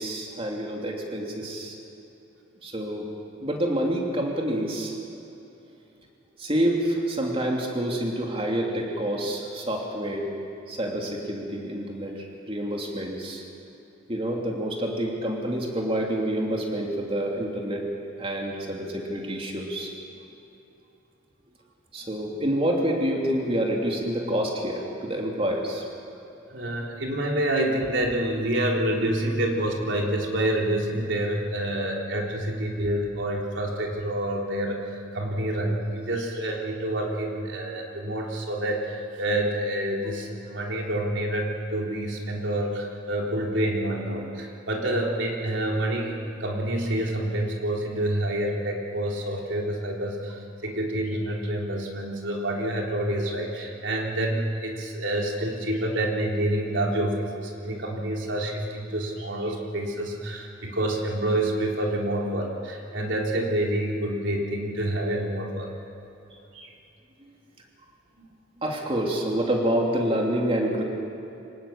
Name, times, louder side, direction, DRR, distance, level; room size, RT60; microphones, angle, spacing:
voice 1, 0.0-1.7 2.6-3.1 3.4-4.9 6.4-10.3 10.7-13.4 14.1-17.9 18.2-19.9 21.9-25.8 68.6-70.8, right 1 dB, 30° right, -1 dB, 3.0 m, -27 dB
voice 2, 26.5-65.7 66.5-66.7 68.2-68.3, right 1 dB, 70° right, -1 dB, 3.6 m, -28 dB
25.5 x 19.0 x 7.4 m, 2.9 s
head